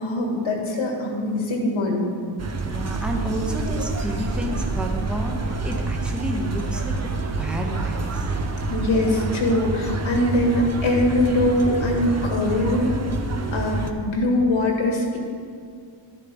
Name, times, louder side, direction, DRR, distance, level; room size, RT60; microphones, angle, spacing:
voice 1, 0.0-2.1 8.7-13.0 13.5-15.2, left 1 dB, 70° left, 0 dB, 1.9 m, -22 dB
sound 1, 2.4-13.9, right 3 dB, 35° right, 0.7 m, -27 dB
voice 2, 2.6-6.9 7.4-8.3, equal, ahead, 1 dB, 0.9 m, -30 dB
12.0 x 10.0 x 3.6 m, 2.2 s
wide cardioid pair, 140°, 48 cm